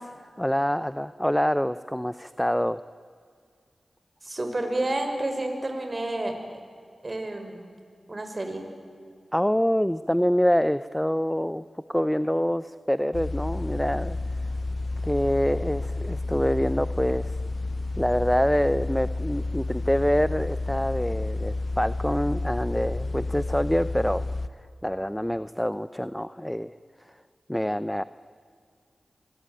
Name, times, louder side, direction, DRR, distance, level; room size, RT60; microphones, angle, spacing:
voice 1, 0.4-2.8 9.3-11.6 11.9-14.2 15.0-17.3 18.0-24.3 24.8-26.7 27.5-28.0, equal, 5° left, 15 dB, 0.7 m, -26 dB
voice 2, 4.2-6.4 7.0-7.7 8.1-8.6, right 1 dB, 35° right, 5 dB, 5.6 m, -30 dB
sound 1, 13.1-24.5, left 2 dB, 55° left, 1.0 m, -30 dB
25.5 x 22.0 x 9.2 m, 2.1 s
cardioid pair, 50°, 0 cm